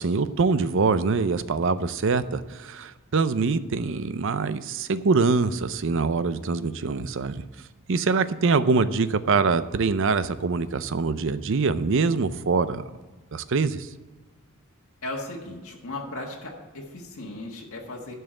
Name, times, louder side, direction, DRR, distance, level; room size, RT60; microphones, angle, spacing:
voice 1, 0.0-7.4 7.9-12.8 13.3-13.9, right 4 dB, 60° right, 13 dB, 0.5 m, -24 dB
voice 2, 15.0-18.1, left 2 dB, 85° left, -1 dB, 1.6 m, -36 dB
11.0 x 5.6 x 7.7 m, 1.3 s
head